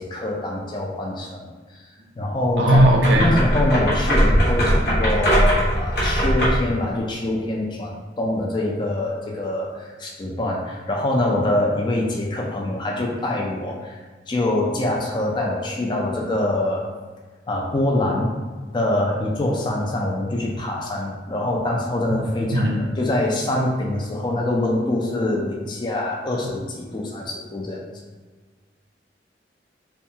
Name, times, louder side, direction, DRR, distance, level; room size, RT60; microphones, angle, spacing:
voice 1, 0.0-1.5 2.2-2.8 3.1-16.8 17.5-18.3 18.7-27.8, left 1 dB, 25° left, -1 dB, 0.3 m, -24 dB
sound 1, 2.6-6.7, equal, 65° left, 0.8 m, -20 dB
voice 2, 2.6-3.3 22.2-22.8, right 1 dB, 85° right, 1 dB, 0.5 m, -17 dB
2.7 x 2.3 x 2.6 m, 1.4 s
head